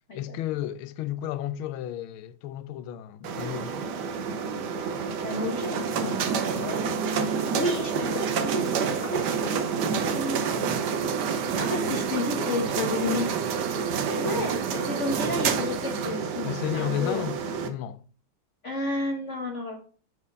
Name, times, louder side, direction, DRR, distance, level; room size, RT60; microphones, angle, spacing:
voice 1, 0.1-3.9 5.9-6.2 6.5-6.7 16.4-17.4 17.6-18.0, left 12 dB, 80° left, 1.4 m, -33 dB
sound 1, 3.2-17.7, right 6 dB, 65° right, 1.3 m, -28 dB
voice 2, 5.2-6.8 7.1-9.3 10.1-13.3 14.1-17.3 18.6-19.8, left 2 dB, 45° left, 1.1 m, -32 dB
7.1 x 4.3 x 5.3 m
omnidirectional pair, 2.3 m